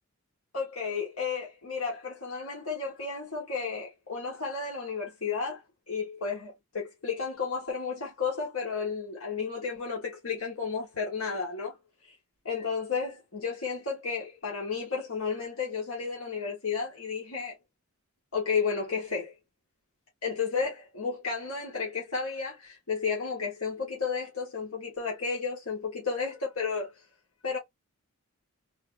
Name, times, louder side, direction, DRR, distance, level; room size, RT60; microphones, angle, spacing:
voice 1, 0.5-5.6 5.9-11.8 12.1-12.2 12.4-17.5 18.3-19.3 20.2-26.9 27.4-27.6, left 5 dB, 75° left, 1.6 m, -32 dB
3.5 x 2.9 x 2.3 m
head